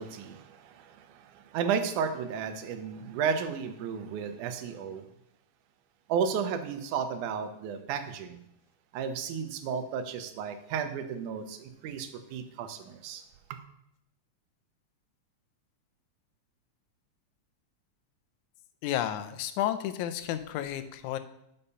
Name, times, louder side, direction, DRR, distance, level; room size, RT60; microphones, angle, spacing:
voice 1, 0.0-5.1 6.1-8.4 8.9-13.2 13.5-13.6, right 7 dB, 85° right, 9 dB, 2.2 m, -33 dB
voice 2, 18.8-21.2, left 11 dB, 85° left, 11 dB, 2.0 m, -31 dB
7.0 x 5.5 x 5.5 m, 0.79 s
omnidirectional pair, 3.4 m